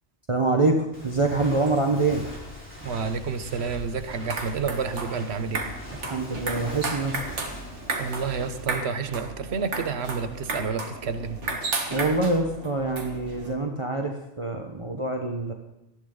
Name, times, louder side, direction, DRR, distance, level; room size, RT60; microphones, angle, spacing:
voice 1, 0.3-2.2 6.0-7.2 11.9-15.5, right 3 dB, 30° right, 3 dB, 1.2 m, -25 dB
Walk footsteps, 0.9-8.6, left 1 dB, 10° left, 4.0 m, -42 dB
voice 2, 2.8-5.7 8.0-11.4, right 5 dB, 65° right, 10 dB, 1.3 m, -30 dB
sound 1, 4.1-13.5, right 3 dB, 85° right, 2.0 m, -34 dB
19.0 x 13.5 x 3.9 m, 0.92 s
omnidirectional pair, 1.2 m